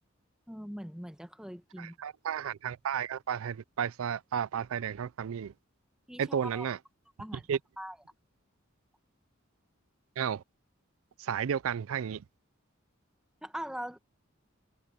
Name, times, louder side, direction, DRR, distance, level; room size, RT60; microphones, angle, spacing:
voice 1, 0.5-2.0 6.1-6.7 7.2-7.5 7.8-8.0 13.4-14.0, equal, 5° right, 1.3 m, -41 dB
voice 2, 1.8-5.5 6.2-6.8 7.5-7.6 10.2-10.4 11.2-12.2, right 8 dB, 85° right, 0.4 m, -33 dB
head